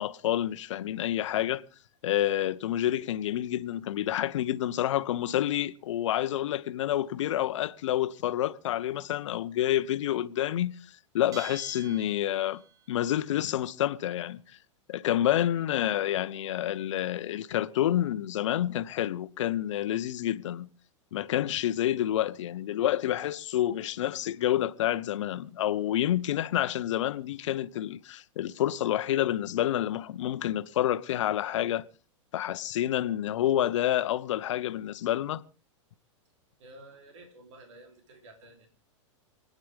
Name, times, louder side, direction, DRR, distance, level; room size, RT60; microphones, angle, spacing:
voice 1, 0.0-1.6 2.0-12.6 12.9-14.4 14.9-20.7 21.1-31.9 32.3-35.4, left 12 dB, 70° left, 0.9 m, -28 dB
Bell, 11.3-12.9, right 8 dB, 20° right, 0.6 m, -47 dB
voice 2, 36.6-38.7, right 1 dB, 70° right, 3.4 m, -51 dB
28.0 x 9.5 x 3.5 m
hypercardioid pair, 110°, 16 cm